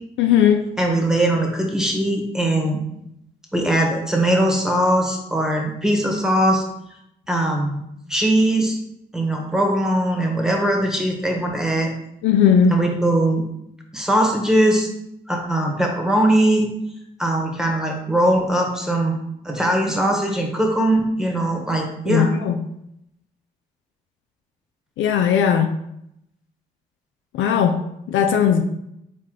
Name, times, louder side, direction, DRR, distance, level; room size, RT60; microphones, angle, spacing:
voice 1, 0.2-0.7 12.2-12.8 22.1-22.6 25.0-25.8 27.3-28.6, left 8 dB, 65° left, 6 dB, 0.4 m, -18 dB
voice 2, 0.8-2.8 3.5-6.6 7.3-7.8 8.1-8.8 9.1-11.9 12.7-13.4 13.9-14.9 15.3-16.7 17.2-19.1 19.4-22.3, right 1 dB, 5° right, 1 dB, 1.2 m, -20 dB
4.2 x 3.0 x 3.8 m, 0.79 s
hypercardioid pair, 50°, 21 cm